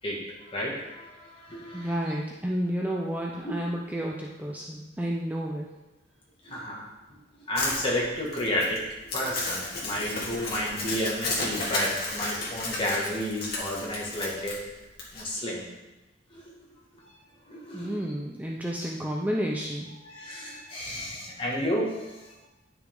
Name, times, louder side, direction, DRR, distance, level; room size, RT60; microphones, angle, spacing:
voice 1, 0.5-1.9 3.4-3.6 6.4-6.8 7.5-8.8 9.1-14.6 15.1-15.7 16.3-16.5 17.5-18.0 20.1-22.5, equal, 30° left, -4 dB, 2.2 m, -31 dB
voice 2, 1.7-5.7 17.7-19.9, equal, 10° right, -2 dB, 0.6 m, -31 dB
Crumpling crinkling, 7.5-15.2, left 2 dB, 55° left, 2.1 m, -33 dB
10.0 x 5.9 x 3.9 m, 1.0 s
head